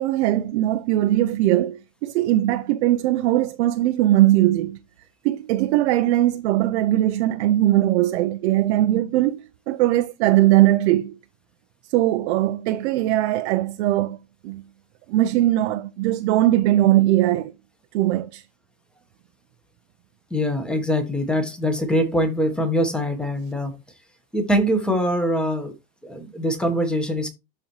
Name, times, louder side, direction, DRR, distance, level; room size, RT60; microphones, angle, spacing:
voice 1, 0.0-4.8 5.2-11.2 11.9-14.2 14.4-14.6 15.1-17.5 17.9-18.4, right 14 dB, 50° right, 0.6 m, -20 dB
voice 2, 20.3-23.8 24.3-25.7 26.0-27.3, equal, ahead, 1.1 m, -23 dB
12.0 x 4.3 x 3.0 m
supercardioid pair, 155°, 44 cm